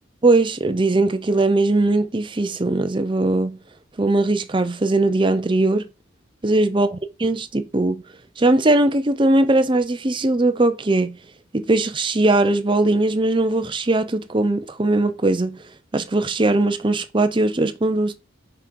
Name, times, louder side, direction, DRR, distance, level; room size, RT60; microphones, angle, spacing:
voice 1, 0.2-3.6 4.0-5.9 6.4-8.0 8.4-11.2 11.5-15.6 15.9-18.1, right 2 dB, 25° right, 0.6 m, -20 dB
5.8 x 5.1 x 4.6 m
head